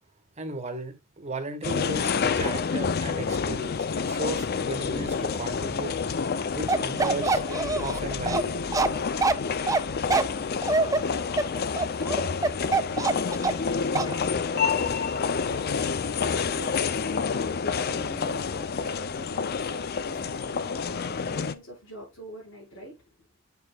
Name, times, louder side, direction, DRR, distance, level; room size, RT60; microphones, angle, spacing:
voice 1, 0.4-5.9 6.5-7.4 7.8-8.6, right 2 dB, 35° right, 1.6 m, -35 dB
sound 1, 1.6-21.5, left 5 dB, 50° left, 0.5 m, -28 dB
Bark, 6.7-13.7 14.0-14.1, right 3 dB, 15° right, 0.6 m, -25 dB
voice 2, 11.5-23.0, equal, 75° left, 5.5 m, -44 dB
9.3 x 6.1 x 2.4 m
head